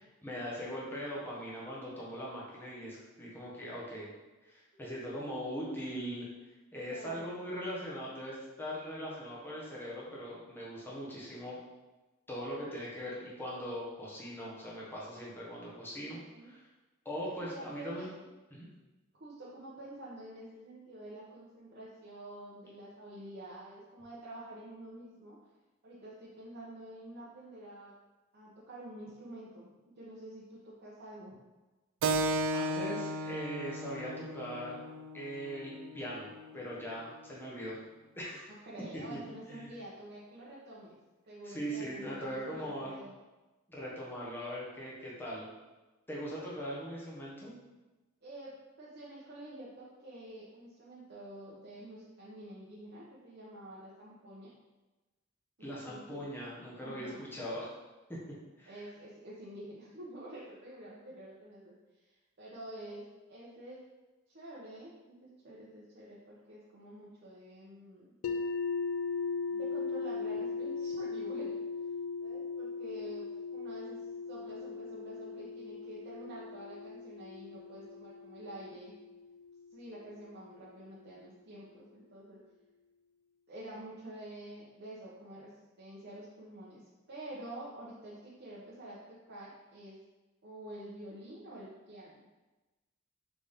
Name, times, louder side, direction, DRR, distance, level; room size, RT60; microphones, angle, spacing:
voice 1, 0.0-4.1 4.4-6.3 6.7-11.6 12.3-16.6 17.0-18.1 18.5-18.7 32.5-34.9 35.1-36.3 36.5-37.8 38.2-38.5 39.5-39.7 41.4-42.9 43.7-45.5 46.1-47.5 55.6-57.7 58.6-58.8, equal, 10° left, -6 dB, 0.9 m, -40 dB
voice 2, 6.8-7.4 16.1-16.5 17.2-18.1 19.2-25.4 25.8-27.9 28.3-29.7 30.0-31.4 38.6-41.0 41.3-43.1 46.3-46.5 48.2-54.5 55.6-56.2 56.8-57.2 58.7-63.8 64.3-64.9 65.2-68.1 69.5-71.6 72.2-78.9 79.7-82.4 83.5-85.5 85.8-86.8 87.1-90.0 90.4-92.3, right 1 dB, 55° right, -8 dB, 0.8 m, -48 dB
Keyboard (musical), 32.0-37.1, right 2 dB, 75° right, 0.3 m, -36 dB
sound 1, 68.2-80.2, left 4 dB, 80° left, 0.3 m, -38 dB
4.0 x 3.5 x 3.5 m, 1.1 s
head